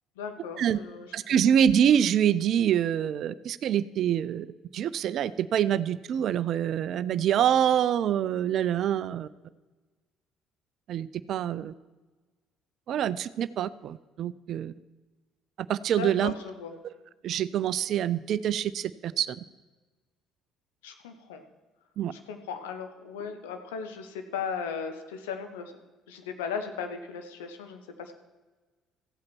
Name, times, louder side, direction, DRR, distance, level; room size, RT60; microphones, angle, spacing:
voice 1, 0.2-1.1 16.0-16.8 20.8-21.4 22.1-25.7 26.1-28.1, left 6 dB, 70° left, 6 dB, 1.1 m, -37 dB
voice 2, 1.1-4.5 4.7-9.3 10.9-11.7 12.9-14.7 15.7-16.3 16.8-16.9 17.2-19.4 22.0-22.1, right 9 dB, 50° right, 16 dB, 0.4 m, -26 dB
15.0 x 8.5 x 4.6 m, 1.3 s
figure-of-eight pair, 50°, 0 cm